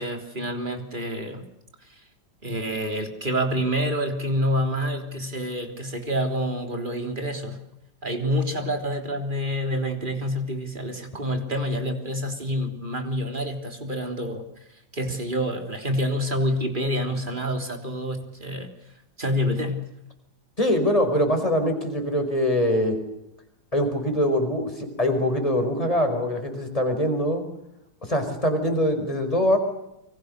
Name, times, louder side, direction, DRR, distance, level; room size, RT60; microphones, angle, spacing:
voice 1, 0.0-1.4 2.4-7.6 8.0-14.5 14.9-18.7 19.2-19.9, equal, 30° right, 5 dB, 3.7 m, -27 dB
voice 2, 20.6-23.0 23.7-27.4 28.1-29.6, left 1 dB, 20° left, 5 dB, 5.2 m, -23 dB
29.0 x 25.0 x 6.7 m, 0.84 s
omnidirectional pair, 1.8 m